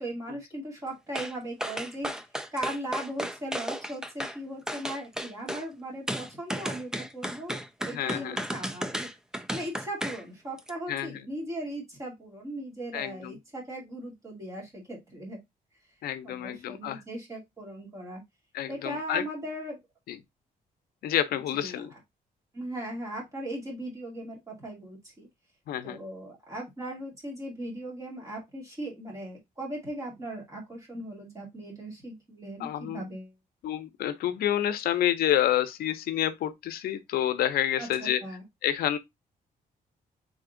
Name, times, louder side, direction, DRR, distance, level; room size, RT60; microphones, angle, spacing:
voice 1, 0.0-2.1 2.5-9.1 9.5-15.4 16.2-18.2 18.7-19.8 21.5-22.0 22.5-25.3 25.8-33.3 37.8-38.4, right 1 dB, 20° right, 2.1 m, -38 dB
sound 1, 1.1-1.3 1.6-4.4 4.7-5.6 6.1-10.2 10.6-10.7, equal, 5° right, 0.4 m, -34 dB
voice 2, 7.9-8.4 10.9-11.1 12.9-13.4 16.0-17.0 18.5-19.2 20.1-20.2 21.0-21.9 25.7-26.0 32.6-33.0 33.6-38.2 38.6-39.0, left 11 dB, 85° left, 0.6 m, -28 dB
3.8 x 3.5 x 3.7 m
cardioid pair, 175°, 15 cm